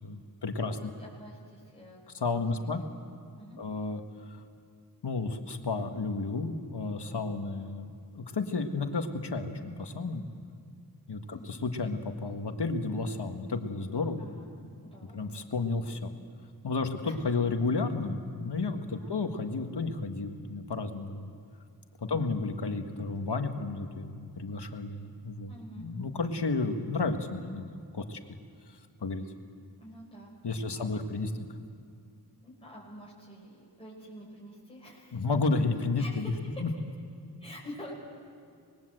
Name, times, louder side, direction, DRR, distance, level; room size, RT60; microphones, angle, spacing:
voice 1, 0.0-0.9 2.1-2.8 3.6-4.4 5.0-10.2 11.1-14.2 15.1-16.1 16.6-21.3 22.1-28.2 29.0-29.3 30.4-31.3 35.1-36.3 36.6-36.7, left 3 dB, 75° left, 6 dB, 1.8 m, -32 dB
voice 2, 0.6-2.0 2.3-2.9 3.4-3.6 11.3-11.5 14.2-14.5 14.9-15.2 17.0-17.1 18.9-19.1 22.0-22.3 25.5-25.9 29.8-30.9 32.4-35.2 36.0-36.7 37.4-37.9, equal, 15° left, -6 dB, 5.9 m, -48 dB
25.0 x 21.5 x 7.9 m, 2.3 s
wide cardioid pair, 50°, 41 cm